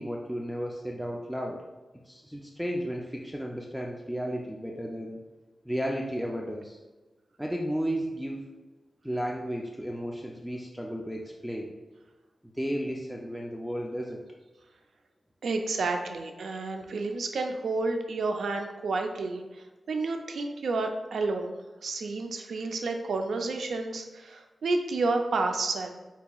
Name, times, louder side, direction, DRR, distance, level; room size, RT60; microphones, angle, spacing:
voice 1, 0.0-1.6 2.1-5.2 5.6-6.8 7.4-8.4 9.0-11.7 12.4-14.3, equal, ahead, 0 dB, 0.5 m, -33 dB
voice 2, 15.4-21.6 21.8-25.9, right 3 dB, 90° right, 4 dB, 0.5 m, -30 dB
8.0 x 2.8 x 2.3 m, 1.2 s
wide cardioid pair, 85°, 0 cm